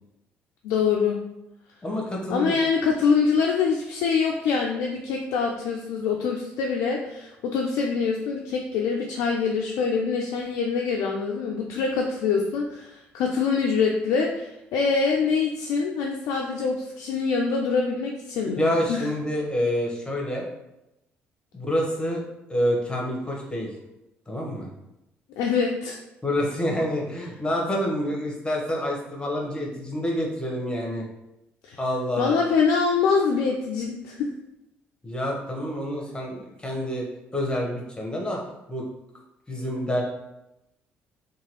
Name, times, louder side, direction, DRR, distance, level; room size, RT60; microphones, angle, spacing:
voice 1, 0.6-1.2 2.3-19.0 25.4-26.0 31.6-31.8 32.2-34.3, left 5 dB, 70° left, 0 dB, 0.3 m, -24 dB
voice 2, 1.8-2.6 18.4-20.4 21.5-22.2 22.5-23.7 24.3-24.7 26.2-31.1 31.8-32.4 35.0-37.1 37.3-38.4 38.7-38.8 39.5-40.0, equal, 15° left, -1 dB, 1.0 m, -27 dB
2.8 x 2.3 x 3.0 m, 0.89 s
hypercardioid pair, 55°, 6 cm